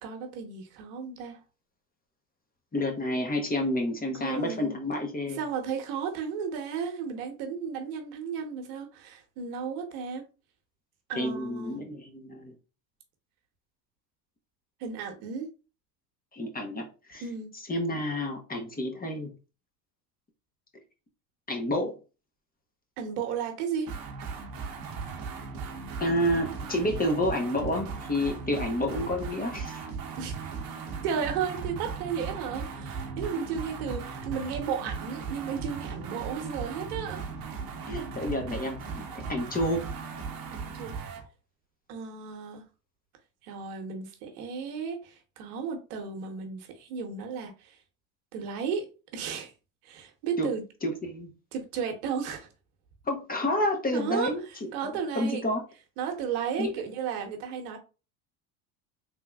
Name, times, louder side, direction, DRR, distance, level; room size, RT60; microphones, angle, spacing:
voice 1, 0.0-1.4 4.1-4.8 5.2-10.2 11.1-11.8 14.8-15.5 17.2-17.5 23.0-23.9 30.2-30.3 31.0-37.2 40.5-40.9 41.9-42.6 43.4-47.8 48.3-48.9 49.1-49.5 49.8-50.6 51.5-52.5 53.9-55.5 56.0-57.8, right 6 dB, 70° right, 1.1 m, -34 dB
voice 2, 2.7-5.4 11.2-12.5 16.3-17.2 17.7-19.3 21.5-21.9 26.0-29.8 37.8-39.9 50.4-50.5 50.8-51.3 53.1-55.6 56.6-56.7, left 1 dB, 20° left, 0.9 m, -29 dB
sound 1, 23.9-41.3, right 5 dB, 50° right, 1.0 m, -37 dB
3.5 x 3.0 x 2.3 m
hypercardioid pair, 85°, 46 cm